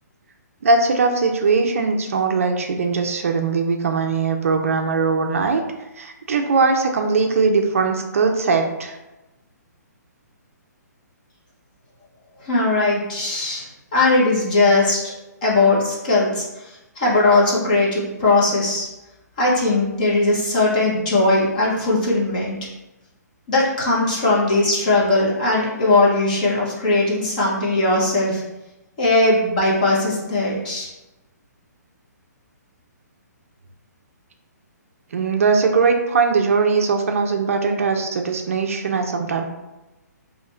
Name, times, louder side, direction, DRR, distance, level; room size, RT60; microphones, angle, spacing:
voice 1, 0.6-5.6 6.0-9.0 35.1-39.4, right 4 dB, 50° right, 4 dB, 0.4 m, -20 dB
voice 2, 12.4-15.1 15.4-18.9 19.4-22.6 23.5-28.4 29.0-30.9, left 2 dB, 25° left, -5 dB, 0.8 m, -19 dB
2.7 x 2.4 x 4.2 m, 1.0 s
hypercardioid pair, 175°, 9 cm